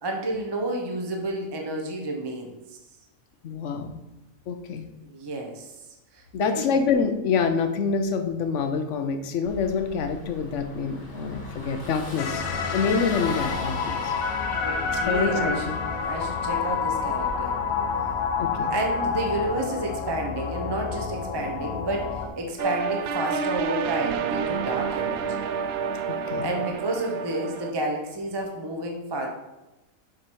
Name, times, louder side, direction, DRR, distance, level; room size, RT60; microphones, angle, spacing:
voice 1, 0.0-2.8 5.0-5.7 6.1-6.6 14.6-15.6 16.0-17.6 18.7-25.4 26.4-29.3, right 1 dB, 20° right, 2 dB, 0.8 m, -30 dB
voice 2, 3.4-3.9 4.5-4.9 6.3-12.4 12.7-14.1 15.0-15.6 18.4-18.7 26.1-26.5, left 5 dB, 60° left, 7 dB, 1.0 m, -26 dB
Car passing by / Engine, 9.4-17.3, left 1 dB, 40° left, 1.6 m, -40 dB
sound 1, 12.2-22.3, left 5 dB, 80° left, 1.2 m, -28 dB
sound 2, 22.6-27.7, right 6 dB, 65° right, 0.6 m, -29 dB
7.5 x 4.7 x 4.6 m, 0.99 s
omnidirectional pair, 1.5 m